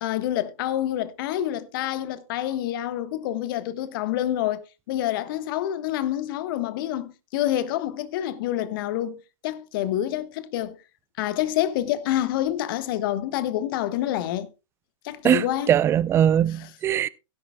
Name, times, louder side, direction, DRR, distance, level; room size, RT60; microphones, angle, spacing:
voice 1, 0.0-4.6 4.9-9.2 9.4-10.8 11.2-14.5 15.0-15.7, left 12 dB, 40° left, 1.3 m, -27 dB
voice 2, 15.2-17.1, right 10 dB, 15° right, 0.5 m, -21 dB
17.0 x 10.5 x 2.3 m
figure-of-eight pair, 120°, 17 cm